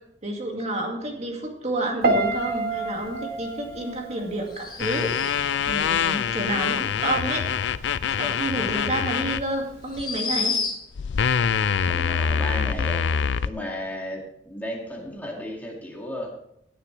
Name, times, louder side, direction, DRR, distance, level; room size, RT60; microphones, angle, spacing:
voice 1, 0.2-5.3 5.7-7.5 8.1-10.6, right 1 dB, 40° right, 1 dB, 2.2 m, -29 dB
Piano, 2.0-5.1 5.4-5.8, right 3 dB, 55° right, 1.5 m, -28 dB
sound 1, 4.5-5.6 8.7-8.8 9.8-11.1, left 4 dB, 25° left, 2.8 m, -30 dB
sound 2, 4.8-9.4 10.0-10.2 10.9-13.5, left 7 dB, 85° left, 0.5 m, -25 dB
voice 2, 6.5-7.1 11.9-16.3, left 1 dB, 10° left, -2 dB, 2.4 m, -35 dB
16.5 x 8.8 x 3.4 m, 0.77 s
head